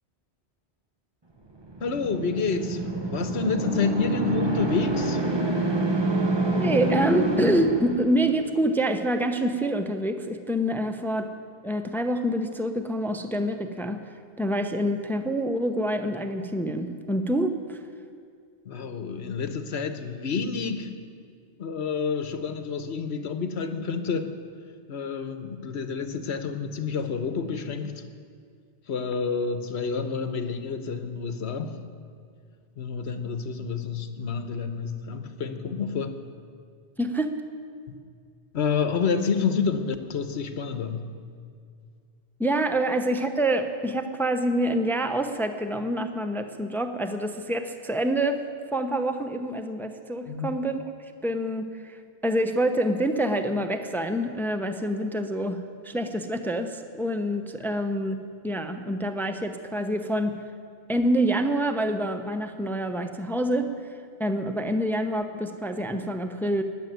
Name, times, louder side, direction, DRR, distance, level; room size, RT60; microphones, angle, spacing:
sound 1, 1.6-8.5, right 2 dB, 25° right, 1.2 m, -27 dB
voice 1, 1.8-5.3 18.6-20.9 21.6-24.4 24.9-28.0 28.9-31.8 32.8-36.2 37.9-38.0 38.5-41.1 50.3-50.6, left 5 dB, 70° left, 9 dB, 1.3 m, -29 dB
voice 2, 6.6-11.3 11.6-17.8 37.0-37.4 42.4-48.4 48.7-50.8 51.2-60.4 60.9-63.8 64.2-66.6, right 1 dB, ahead, 8 dB, 0.7 m, -26 dB
19.5 x 7.6 x 9.3 m, 2.2 s
omnidirectional pair, 1.1 m